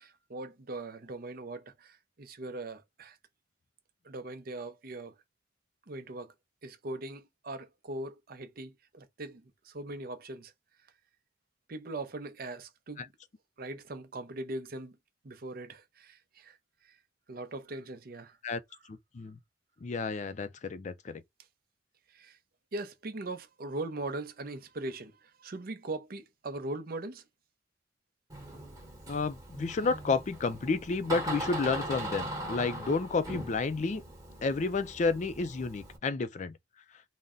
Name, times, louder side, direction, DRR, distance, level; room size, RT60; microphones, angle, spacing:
voice 1, 0.0-3.2 4.0-5.1 5.9-6.3 6.6-10.5 11.7-13.1 13.6-15.0 15.2-16.6 16.8-17.0 17.3-18.4 22.1-22.4 22.7-27.2, right 2 dB, 50° right, 0.6 m, -40 dB
voice 2, 18.9-19.4 19.8-21.2 29.1-34.0 34.4-36.6, left 4 dB, 40° left, 0.4 m, -31 dB
Door, 28.3-36.0, right 1 dB, 20° right, 1.2 m, -40 dB
3.9 x 2.1 x 3.6 m
head